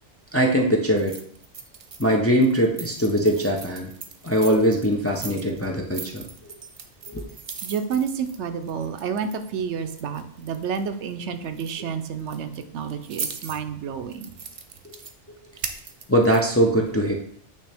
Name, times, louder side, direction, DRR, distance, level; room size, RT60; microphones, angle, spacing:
voice 1, 0.3-1.2 2.0-3.9 4.2-6.2 7.1-7.2 16.1-17.1, equal, 20° left, 0 dB, 0.4 m, -21 dB
sound 1, 1.0-2.2 2.4-9.5 9.9-11.1 11.4-11.7 12.2-13.6 14.1-15.1 15.6-16.5, right 5 dB, 50° right, 0.4 m, -39 dB
voice 2, 7.6-14.3, right 6 dB, 75° right, 9 dB, 0.9 m, -30 dB
8.6 x 3.2 x 3.4 m, 0.63 s
omnidirectional pair, 1.2 m